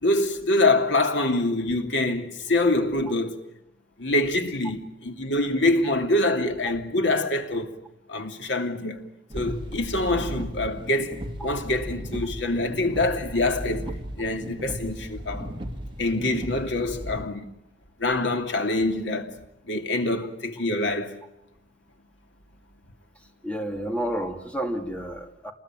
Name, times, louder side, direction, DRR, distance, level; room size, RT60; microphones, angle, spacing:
voice 1, 0.0-3.4 4.0-7.8 8.1-9.0 9.3-11.1 11.4-13.9 14.2-15.5 16.0-17.5 18.0-19.3 19.7-21.1, left 2 dB, 70° left, 2.7 m, -25 dB
sound 1, 9.3-17.2, equal, 30° right, 2.9 m, -36 dB
voice 2, 23.4-25.5, right 1 dB, 5° left, 2.4 m, -30 dB
27.5 x 21.0 x 9.1 m
head